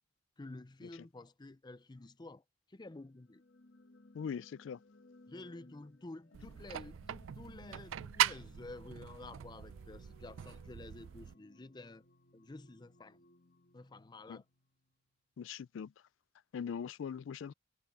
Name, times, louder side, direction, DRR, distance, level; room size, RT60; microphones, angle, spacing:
voice 1, 0.4-2.4 2.7-3.4 5.3-12.0 12.3-13.2 13.7-14.4, left 2 dB, 20° left, 0.5 m, -50 dB
sound 1, 3.1-15.0, left 2 dB, 55° left, 2.0 m, -63 dB
voice 2, 4.1-4.8 14.3-14.4 15.4-15.9 16.5-17.5, left 7 dB, 75° left, 0.3 m, -41 dB
sound 2, 6.3-11.3, right 11 dB, 90° right, 0.4 m, -39 dB
head